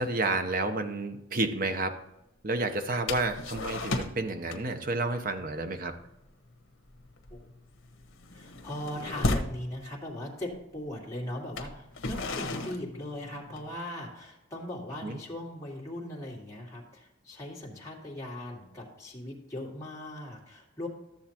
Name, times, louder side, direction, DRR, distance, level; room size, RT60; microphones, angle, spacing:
voice 1, 0.0-2.0 2.4-5.9 15.0-15.2, right 2 dB, 45° right, 7 dB, 0.8 m, -30 dB
sound 1, 3.1-4.2 4.5-4.8 5.1-5.4 5.8-6.0 6.3-6.6 6.9-9.6 10.5-10.6 11.4-13.7, left 2 dB, 85° left, 1.0 m, -34 dB
voice 2, 8.3-20.9, left 1 dB, 15° left, -4 dB, 2.0 m, -39 dB
13.0 x 7.2 x 2.9 m, 0.89 s
head